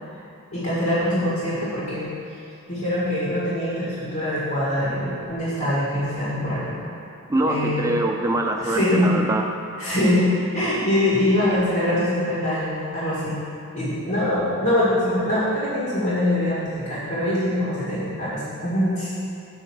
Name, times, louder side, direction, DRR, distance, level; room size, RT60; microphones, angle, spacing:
voice 1, 0.5-2.1 2.7-6.8 7.5-7.9 8.6-9.1 9.8-10.3 10.5-13.4 13.7-19.1, left 1 dB, 70° left, -9 dB, 1.9 m, -23 dB
voice 2, 7.3-9.4, right 1 dB, 15° right, 2 dB, 0.4 m, -23 dB
8.1 x 4.4 x 6.0 m, 2.5 s
head